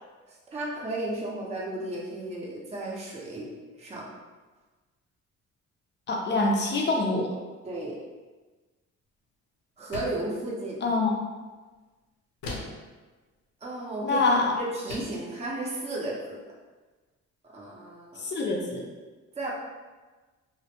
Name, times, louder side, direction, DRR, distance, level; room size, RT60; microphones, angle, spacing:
voice 1, 0.3-3.5 3.8-4.1 7.6-8.0 9.8-10.8 13.6-14.3 14.6-16.4 17.4-18.3 19.3-19.5, right 2 dB, 20° right, -4 dB, 0.5 m, -34 dB
voice 2, 6.1-7.3 10.8-11.1 14.0-14.5 18.2-18.8, left 3 dB, 35° left, 0 dB, 0.4 m, -25 dB
sound 1, 9.9-10.3 12.4-12.9 14.2-14.3 14.9-15.2, left 2 dB, 75° left, 0.6 m, -37 dB
2.1 x 2.1 x 2.8 m, 1.3 s
cardioid pair, 90°, 30 cm